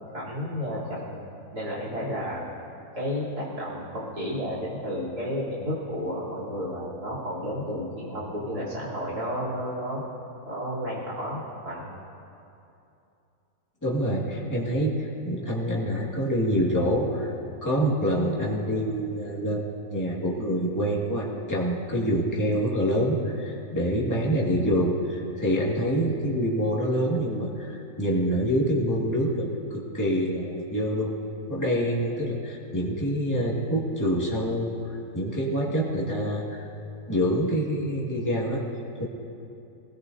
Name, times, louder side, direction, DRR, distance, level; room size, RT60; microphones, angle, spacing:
voice 1, 0.1-1.2 1.5-2.4 2.9-10.0 10.5-11.9, equal, 70° right, -5 dB, 3.9 m, -32 dB
voice 2, 13.8-17.3 17.6-31.1 31.5-36.6 37.1-38.6 39.0-39.1, equal, 10° left, -5 dB, 1.9 m, -26 dB
20.0 x 17.5 x 2.7 m, 2.7 s
omnidirectional pair, 1.7 m